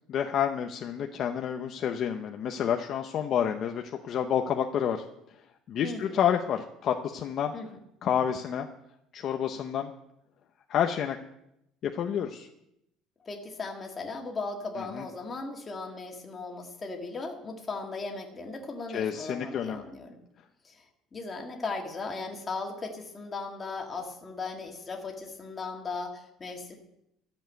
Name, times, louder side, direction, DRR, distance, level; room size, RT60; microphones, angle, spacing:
voice 1, 0.1-5.0 5.7-7.5 8.0-8.7 9.1-9.9 10.7-11.2 11.8-12.5 14.8-15.1 18.9-19.8, left 9 dB, 40° left, 4 dB, 0.7 m, -29 dB
voice 2, 5.8-6.2 7.5-7.8 13.2-20.2 20.6-20.8 21.1-26.8, left 3 dB, 20° left, 1 dB, 1.9 m, -37 dB
14.0 x 7.3 x 9.1 m, 0.82 s
cardioid pair, 175°, 0 cm